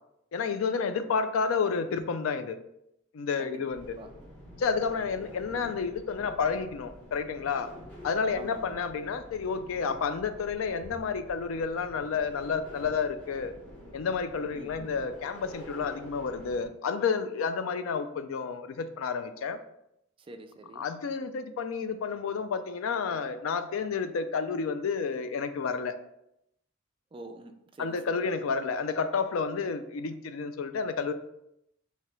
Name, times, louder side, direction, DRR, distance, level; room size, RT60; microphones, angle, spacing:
voice 1, 0.3-2.6 3.1-3.9 4.6-7.7 8.0-13.5 13.9-19.6 20.8-25.9 27.8-31.1, left 5 dB, 80° left, 10 dB, 0.4 m, -30 dB
sound 1, 3.7-16.7, equal, 10° left, 0.9 m, -48 dB
voice 2, 8.3-8.8 14.5-14.9 20.3-20.9 27.1-28.2, right 2 dB, 25° right, 6 dB, 0.3 m, -46 dB
3.0 x 2.8 x 4.5 m, 0.80 s
head